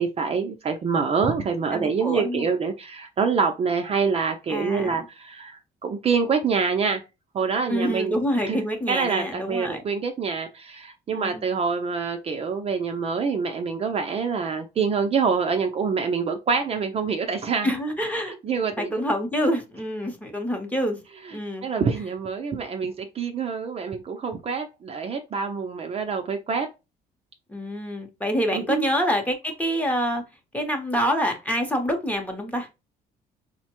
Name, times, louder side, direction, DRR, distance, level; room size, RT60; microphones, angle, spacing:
voice 1, 0.0-7.0 7.3-8.6 8.9-17.7 18.4-19.0 21.3-26.7 28.5-28.9, right 5 dB, 35° right, 0.5 m, -26 dB
voice 2, 1.7-2.5 4.5-4.9 7.7-9.8 11.1-11.4 17.6-21.0 21.3-21.7 27.5-30.2 30.5-32.7, equal, 10° left, 0.8 m, -26 dB
4.3 x 2.1 x 2.9 m
cardioid pair, 110°, 17 cm